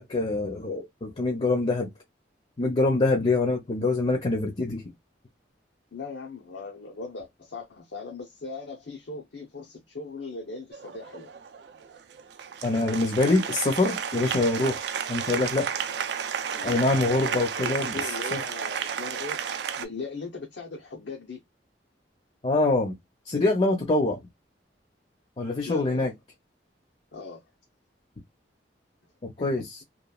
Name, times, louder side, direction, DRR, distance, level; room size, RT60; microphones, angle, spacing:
voice 1, 0.0-1.9 2.6-4.8 12.6-15.7 16.6-18.4 22.4-23.0 23.3-24.2 25.4-26.1 29.2-29.6, left 2 dB, 35° left, 0.6 m, -25 dB
voice 2, 5.9-11.3 13.4-13.6 16.5-19.4 19.8-21.4 25.6-26.1 27.1-27.4 29.4-29.5, left 3 dB, 85° left, 0.7 m, -39 dB
Applause, 10.7-19.9, right 7 dB, 70° right, 0.4 m, -32 dB
3.0 x 2.3 x 2.3 m
head